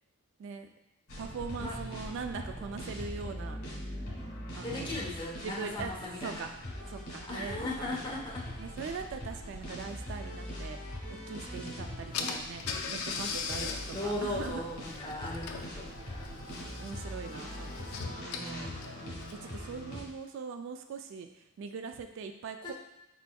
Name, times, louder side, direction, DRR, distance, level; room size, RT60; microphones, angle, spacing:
sound 1, 1.1-20.0, equal, 70° left, 1.4 m, -42 dB
voice 1, 1.2-3.6 4.6-5.0 5.4-5.9 6.2-6.5 6.9-7.9 8.6-10.8 11.1-13.7 14.0-14.6 16.8-17.9 18.4-18.7 19.3-22.7, right 5 dB, 60° right, 7 dB, 0.3 m, -41 dB
voice 2, 4.6-6.5 7.3-8.4 12.1-12.4 13.2-16.3 18.1-19.2, left 1 dB, 20° left, -4 dB, 0.8 m, -38 dB
Car / Engine, 11.7-11.8 12.1-19.6, left 5 dB, 85° left, 0.4 m, -40 dB
4.3 x 4.3 x 2.2 m, 0.90 s
head